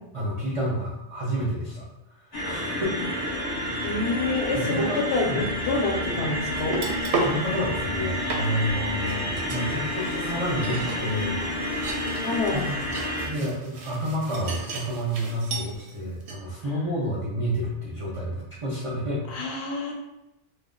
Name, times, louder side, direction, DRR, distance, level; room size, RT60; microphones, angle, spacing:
voice 1, 0.1-1.9 2.2-3.0 3.6-4.0 4.5-5.0 5.2-5.4 7.2-11.4 12.5-12.8 13.3-19.2, equal, 45° right, -6 dB, 0.4 m, -30 dB
sound 1, 2.3-13.3, left 1 dB, 35° left, 0.4 m, -29 dB
voice 2, 3.8-6.8 12.2-12.6 19.3-19.9, left 3 dB, 75° left, 0 dB, 0.9 m, -27 dB
sound 2, 6.6-7.4 7.9-8.0 8.3-15.9 16.2-16.3, right 3 dB, 75° right, 0.8 m, -34 dB
2.3 x 2.0 x 3.6 m, 0.93 s
omnidirectional pair, 1.1 m